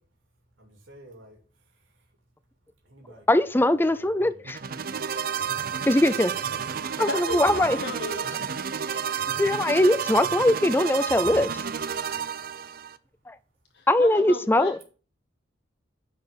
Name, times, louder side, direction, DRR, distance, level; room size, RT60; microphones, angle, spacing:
voice 1, 0.6-1.4 1.7-1.8 2.8-5.1 5.8-7.1 9.0-9.4 10.0-10.1, right 1 dB, 90° right, 2.7 m, -51 dB
voice 2, 3.3-4.6 5.9-6.3 7.0-7.8 8.9-9.0 9.4-11.5 13.3-13.4 13.9-14.8, left 1 dB, 10° left, 0.4 m, -21 dB
sound 1, 4.4-13.0, right 7 dB, 50° right, 0.6 m, -31 dB
voice 3, 7.0-8.3 13.7-14.8, left 3 dB, 60° left, 1.0 m, -34 dB
10.0 x 4.8 x 6.8 m
head